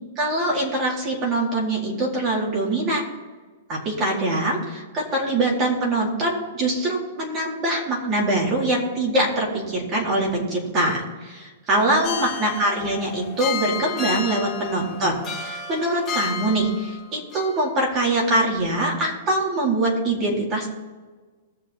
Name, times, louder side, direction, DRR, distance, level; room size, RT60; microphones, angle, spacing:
voice 1, 0.2-3.1 3.7-20.7, right 1 dB, 25° right, -3 dB, 4.3 m, -23 dB
sound 1, 12.0-17.0 17.3-17.5, left 6 dB, 15° left, 1.7 m, -31 dB
21.5 x 7.4 x 4.5 m, 1.4 s
hypercardioid pair, 155°, 0 cm